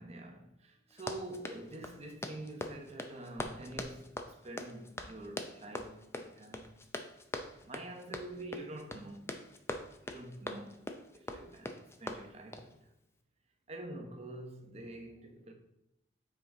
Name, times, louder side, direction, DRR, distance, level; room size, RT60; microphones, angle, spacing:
voice 1, 0.0-6.7 7.6-9.4 10.0-10.8 11.1-11.7 12.0-12.9 13.7-15.5, right 1 dB, 35° right, 0.9 m, -46 dB
Run, 0.9-12.7, left 1 dB, 15° left, 0.4 m, -43 dB
7.6 x 4.8 x 3.7 m
head